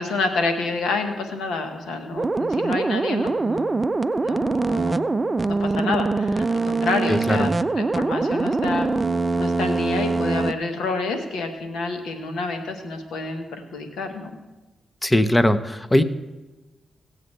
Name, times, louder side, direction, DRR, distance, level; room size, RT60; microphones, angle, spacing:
voice 1, 0.0-3.8 4.2-7.5 7.8-8.9 9.4-13.4 13.7-14.4, left 3 dB, 85° left, 5 dB, 1.3 m, -28 dB
sound 1, 2.2-10.5, right 3 dB, 30° right, 0.4 m, -23 dB
voice 2, 7.1-7.6 15.0-16.0, left 1 dB, 15° left, 11 dB, 0.8 m, -20 dB
17.0 x 8.0 x 3.3 m, 1.1 s
supercardioid pair, 50°, 0 cm